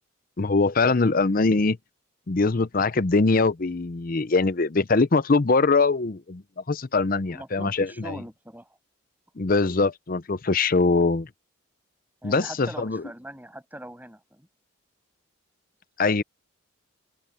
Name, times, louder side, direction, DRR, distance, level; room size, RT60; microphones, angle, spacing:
voice 1, 0.4-1.8 2.3-6.4 6.7-8.2 9.4-11.3 12.2-13.0 16.0-16.2, left 3 dB, 40° left, 0.6 m, -22 dB
voice 2, 7.3-8.7 12.2-14.5, right 1 dB, 10° right, 7.0 m, -41 dB
open air
head